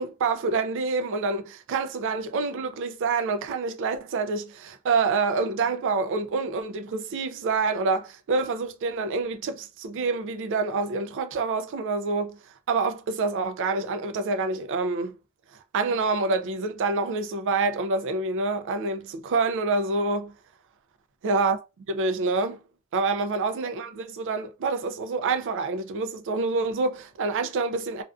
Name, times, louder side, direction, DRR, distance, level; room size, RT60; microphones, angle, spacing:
voice 1, 0.0-12.4 12.7-15.1 15.7-20.3 21.2-21.6 21.9-22.6 22.9-28.0, right 4 dB, 55° right, 0.4 m, -27 dB
2.5 x 2.2 x 2.4 m
head